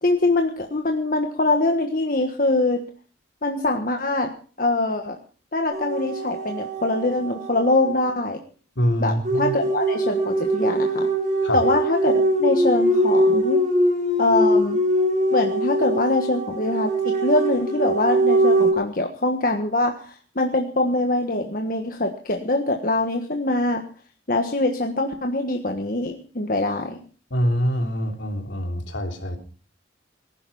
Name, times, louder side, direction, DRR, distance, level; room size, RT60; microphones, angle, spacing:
voice 1, 0.0-2.8 3.4-5.2 5.5-8.4 9.0-11.1 11.5-13.6 14.2-14.8 15.3-23.8 24.3-27.0, left 2 dB, 45° left, 4 dB, 1.4 m, -23 dB
sound 1, 5.7-8.1 9.2-18.7, right 1 dB, 40° right, 4.1 m, -22 dB
voice 2, 8.8-9.5 11.4-11.6 27.3-29.4, equal, 75° left, 4 dB, 3.2 m, -24 dB
19.5 x 11.0 x 5.5 m, 0.41 s
head